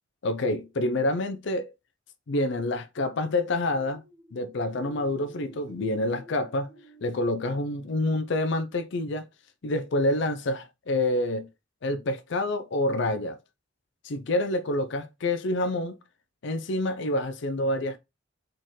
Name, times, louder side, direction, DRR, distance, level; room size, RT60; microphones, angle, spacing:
voice 1, 0.2-1.7 2.3-4.0 4.3-6.7 7.0-9.3 9.6-11.5 11.8-13.4 14.0-16.0 16.4-18.0, left 1 dB, 65° left, 0.5 m, -27 dB
sound 1, 3.4-9.0, equal, 25° right, 0.9 m, -53 dB
4.3 x 3.8 x 3.1 m
head